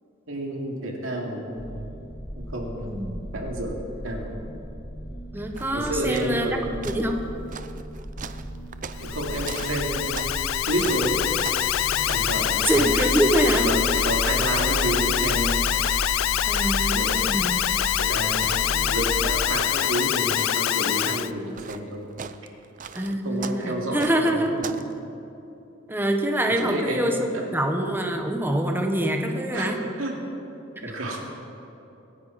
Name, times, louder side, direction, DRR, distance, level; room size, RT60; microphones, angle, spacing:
voice 1, 0.3-1.9 2.4-3.8 4.0-4.4 5.7-6.5 9.0-10.2 10.6-11.2 12.1-12.9 13.6-15.6 16.9-17.2 18.0-22.1 23.2-24.8 26.6-27.5 29.5-29.7 30.0-30.2 30.8-31.2, right 1 dB, 70° right, 0 dB, 2.7 m, -30 dB
sound 1, 1.6-19.5, right 1 dB, 20° left, 1.1 m, -34 dB
voice 2, 2.8-3.2 5.3-7.2 12.6-13.7 16.5-17.6 22.9-24.5 25.9-29.8, right 1 dB, 10° right, 3 dB, 1.2 m, -25 dB
sound 2, 5.5-6.5 6.8-10.5 10.8-11.7 12.0-16.2 16.5-24.9, right 6 dB, 40° right, 0.5 m, -40 dB
Alarm, 8.9-21.3, left 12 dB, 75° left, 0.4 m, -25 dB
25.5 x 10.5 x 4.3 m, 3.0 s
head